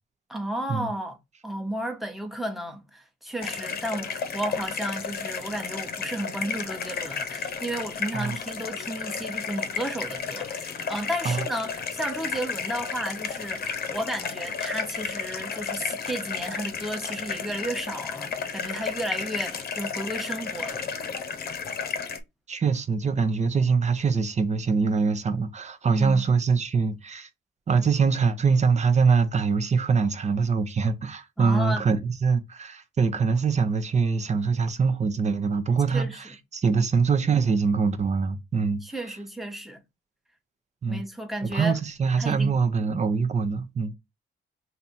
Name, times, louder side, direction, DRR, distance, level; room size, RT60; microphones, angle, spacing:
voice 1, 0.3-1.2 1.4-20.9 25.8-26.2 31.4-31.8 35.9-36.2 38.8-39.8 40.9-41.8 42.2-42.5, right 1 dB, ahead, 1.0 m, -33 dB
sound 1, 3.4-22.2, left 6 dB, 50° left, 0.9 m, -33 dB
voice 2, 22.5-27.3 27.7-38.8 40.8-41.0 41.4-43.9, right 5 dB, 35° right, 0.8 m, -24 dB
3.3 x 2.8 x 4.2 m
cardioid pair, 90°, 20 cm